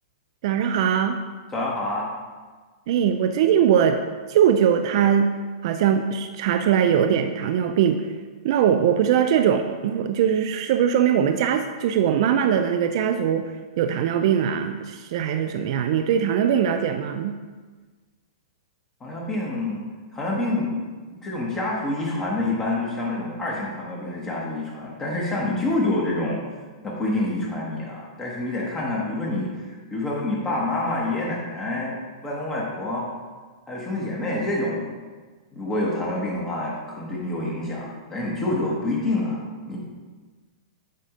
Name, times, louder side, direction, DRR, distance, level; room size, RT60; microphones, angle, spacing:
voice 1, 0.4-1.2 2.9-4.0 4.3-5.3 5.6-8.1 8.4-17.4, right 8 dB, 55° right, 7 dB, 0.3 m, -21 dB
voice 2, 1.5-2.1 19.0-19.8 20.1-20.8 21.2-26.4 26.8-33.1 33.7-34.9 35.5-39.4 39.7-39.8, left 2 dB, 15° left, -4 dB, 1.2 m, -27 dB
7.5 x 2.7 x 5.0 m, 1.4 s
hypercardioid pair, 135°, 3 cm